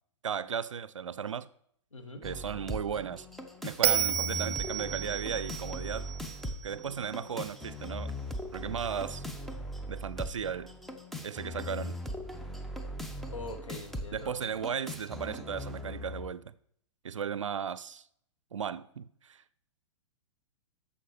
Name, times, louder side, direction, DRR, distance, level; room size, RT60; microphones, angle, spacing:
voice 1, 0.2-1.5 2.2-3.3 3.6-6.1 6.6-8.1 8.5-9.2 9.9-10.7 11.2-12.0 14.1-16.5 17.0-18.1 18.5-19.4, right 7 dB, 80° right, 0.4 m, -35 dB
voice 2, 1.9-2.3 13.3-14.3, left 2 dB, 85° left, 1.5 m, -43 dB
sound 1, 2.2-16.2, left 1 dB, ahead, 0.8 m, -40 dB
Bell, 3.8-7.1, right 11 dB, 30° right, 1.1 m, -32 dB
11.5 x 7.0 x 3.1 m
figure-of-eight pair, 105°, 16 cm